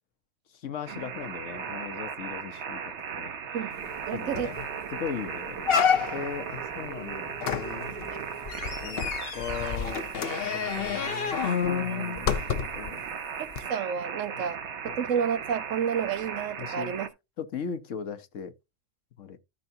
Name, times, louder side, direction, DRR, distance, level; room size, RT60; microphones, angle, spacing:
voice 1, 0.6-3.4 4.1-4.6 4.9-5.9 6.1-8.2 8.8-10.0 10.4-13.1 14.5-14.6 14.8-15.0 16.6-16.9 17.4-18.5 19.2-19.4, left 7 dB, 80° left, 1.3 m, -38 dB
sound 1, 0.9-17.1, right 7 dB, 65° right, 1.2 m, -37 dB
sound 2, 3.7-9.5, right 7 dB, 30° right, 0.7 m, -44 dB
sound 3, 3.9-4.0 4.3-4.7 5.1-5.2 5.6-6.4 7.4-12.9 13.5-13.6, left 7 dB, 55° left, 0.9 m, -29 dB
voice 2, 4.1-4.5 10.8-11.2 11.8-12.3 13.4-17.1, right 7 dB, 85° right, 1.2 m, -31 dB
13.5 x 5.7 x 2.7 m
omnidirectional pair, 1.3 m